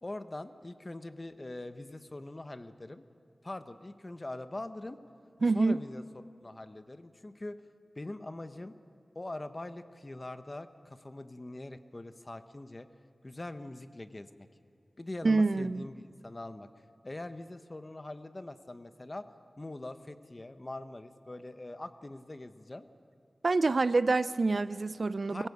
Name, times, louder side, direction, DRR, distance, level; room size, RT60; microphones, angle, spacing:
voice 1, 0.0-3.0 3.4-5.0 5.5-6.0 6.4-7.6 8.0-8.7 9.1-12.9 13.2-14.5 15.0-16.7 17.0-19.3 19.6-22.8 25.3-25.5, left 2 dB, 35° left, 10 dB, 1.0 m, -42 dB
voice 2, 5.4-5.8 15.2-15.8 23.4-25.5, right 3 dB, 60° right, 16 dB, 0.4 m, -26 dB
23.5 x 17.0 x 8.1 m, 2.4 s
wide cardioid pair, 70°, 0 cm